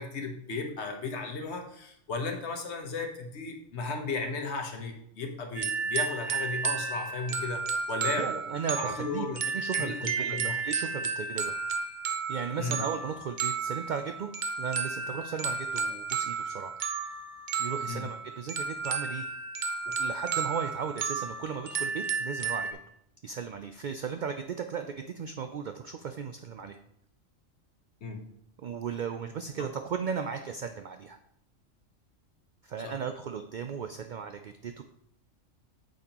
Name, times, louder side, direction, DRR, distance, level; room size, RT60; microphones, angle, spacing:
voice 1, 0.0-8.3 8.8-9.4 9.7-10.5 12.6-12.8 17.9-18.1 28.0-28.3 32.8-32.9, left 3 dB, 60° left, 4 dB, 1.3 m, -35 dB
sound 1, 5.5-22.7, right 5 dB, 45° right, 0.7 m, -33 dB
voice 2, 8.2-9.3 9.5-11.6 12.3-14.3 14.6-16.7 17.6-19.2 20.0-22.7 23.2-26.8 28.6-31.2 32.6-34.8, right 6 dB, 85° right, 7 dB, 0.4 m, -36 dB
8.7 x 6.5 x 2.9 m, 0.73 s
omnidirectional pair, 1.3 m